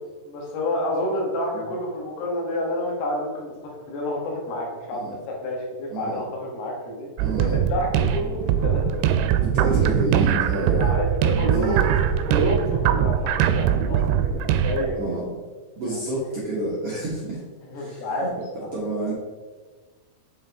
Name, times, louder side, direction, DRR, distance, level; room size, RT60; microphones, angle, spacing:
voice 1, 0.2-7.1 7.4-9.2 10.8-11.9 12.3-14.0 14.4-15.0 15.8-16.0 17.7-18.7, left 1 dB, 80° left, -1 dB, 3.4 m, -29 dB
voice 2, 5.9-6.2 7.2-7.5 9.4-10.9 11.5-11.9 15.0-15.2 15.8-17.4 17.7-18.3 18.7-19.1, right 2 dB, 60° right, -7 dB, 1.6 m, -29 dB
sound 1, 7.2-14.9, right 9 dB, 85° right, 2.6 m, -21 dB
7.4 x 5.6 x 3.5 m, 1.4 s
omnidirectional pair, 4.5 m